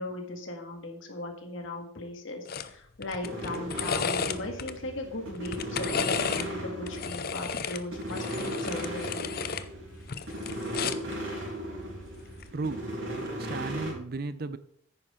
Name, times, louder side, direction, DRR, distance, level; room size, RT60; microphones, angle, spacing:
voice 1, 0.0-9.3, left 2 dB, 70° left, 2.0 m, -38 dB
sound 1, 2.5-2.7 3.0-4.7 5.3-6.5 6.9-9.7 10.0-11.1 12.3-12.5, left 6 dB, 45° left, 0.6 m, -33 dB
sound 2, 3.2-13.9, equal, 70° right, 4.7 m, -37 dB
voice 2, 12.5-12.9 13.4-14.6, right 3 dB, 45° right, 0.5 m, -34 dB
9.8 x 9.6 x 3.8 m
head